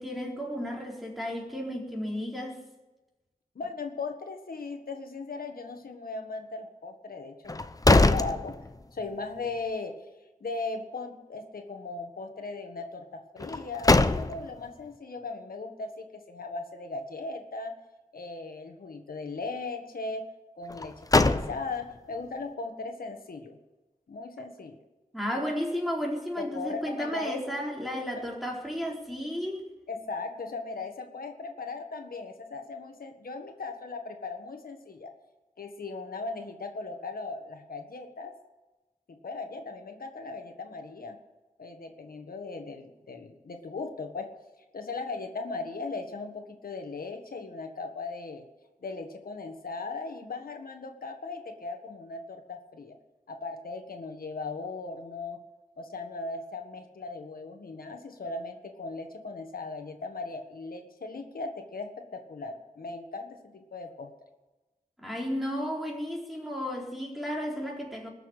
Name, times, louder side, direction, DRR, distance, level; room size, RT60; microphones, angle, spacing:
voice 1, 0.0-2.6 25.1-29.6 65.0-68.1, equal, ahead, -2 dB, 4.3 m, -33 dB
voice 2, 3.6-7.5 7.9-8.6 8.9-10.0 10.4-17.8 18.1-20.3 20.6-23.6 24.1-24.8 26.4-27.6 27.9-28.2 29.9-35.1 35.6-38.4 39.1-41.2 41.6-44.3 44.7-48.5 48.8-53.0 53.3-55.4 55.8-64.1, left 3 dB, 90° left, 5 dB, 1.6 m, -38 dB
sound 1, 7.5-9.1 9.5-9.6 13.4-14.7 20.7-22.0, left 2 dB, 25° left, 0.7 m, -23 dB
21.0 x 6.9 x 8.3 m, 1.1 s
wide cardioid pair, 70°, 15 cm